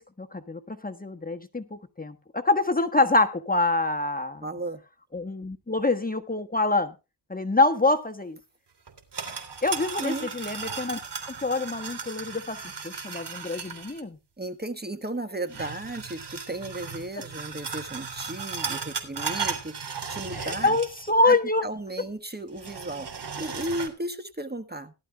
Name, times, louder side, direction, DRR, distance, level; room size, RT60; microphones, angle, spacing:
voice 1, 0.0-4.4 5.1-6.9 7.3-8.4 9.6-11.0 11.4-12.6 12.8-14.2 20.4-21.6, left 2 dB, 20° left, 6 dB, 1.3 m, -25 dB
voice 2, 4.4-4.8 10.0-10.3 14.4-20.8 21.3-21.4 21.6-24.9, right 1 dB, 20° right, 9 dB, 1.3 m, -35 dB
sound 1, 8.9-14.0 15.5-21.2 21.5-21.6 22.5-23.9, right 5 dB, 65° right, 3.0 m, -36 dB
18.5 x 12.0 x 2.2 m, 0.28 s
wide cardioid pair, 75°, 44 cm